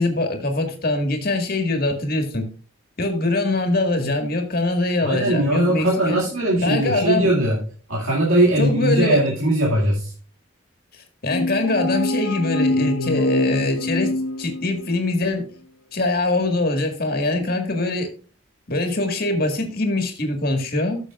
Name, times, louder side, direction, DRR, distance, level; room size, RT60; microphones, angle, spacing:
voice 1, 0.0-2.5 3.0-6.2 6.6-7.3 8.6-9.2 11.2-15.5 15.9-18.1 18.7-21.0, left 2 dB, 45° left, 5 dB, 1.8 m, -23 dB
voice 2, 5.0-7.6 7.9-10.1, right 1 dB, 80° right, -4 dB, 2.2 m, -20 dB
sound 1, 11.3-15.0, left 2 dB, 80° left, 1.1 m, -25 dB
14.5 x 6.8 x 2.4 m, 0.38 s
head